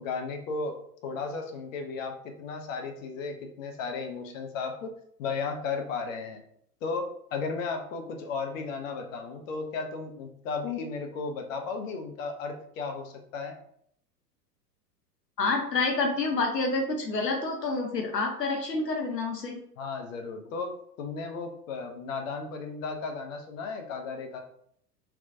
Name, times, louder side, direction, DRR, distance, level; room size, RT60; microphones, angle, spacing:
voice 1, 0.0-4.9 5.2-6.4 6.8-13.5 19.8-24.4, left 4 dB, 55° left, 5 dB, 0.8 m, -35 dB
voice 2, 15.4-19.6, left 3 dB, 90° left, 2 dB, 0.7 m, -28 dB
3.3 x 2.9 x 2.6 m, 0.67 s
figure-of-eight pair, 90°, 48 cm